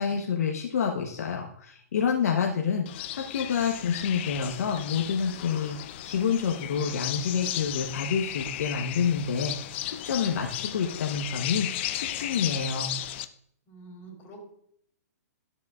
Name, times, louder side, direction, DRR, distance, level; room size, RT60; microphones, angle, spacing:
voice 1, 0.0-12.9, left 6 dB, 65° left, 1 dB, 1.0 m, -28 dB
sound 1, 2.9-13.3, left 13 dB, 45° left, 0.5 m, -35 dB
voice 2, 13.7-14.4, right 2 dB, 25° left, 0 dB, 3.5 m, -46 dB
13.0 x 7.5 x 2.4 m, 0.68 s
hypercardioid pair, 130°, 9 cm